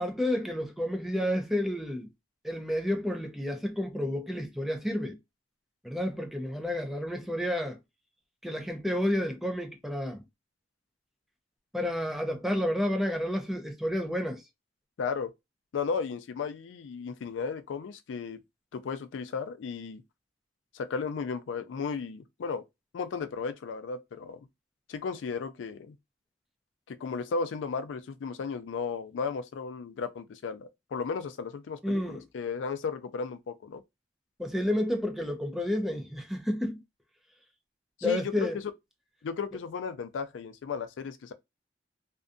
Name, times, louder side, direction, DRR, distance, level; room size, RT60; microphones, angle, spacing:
voice 1, 0.0-2.1 2.4-5.2 5.8-7.8 8.4-10.2 11.7-14.4 31.8-32.2 34.4-36.8 38.0-38.6, left 1 dB, ahead, 0.5 m, -30 dB
voice 2, 15.0-15.3 15.7-18.4 18.7-20.0 20.7-22.6 22.9-24.4 24.9-26.0 26.9-33.8 38.0-38.5 39.2-41.3, left 5 dB, 90° left, 0.4 m, -34 dB
2.5 x 2.2 x 2.5 m
head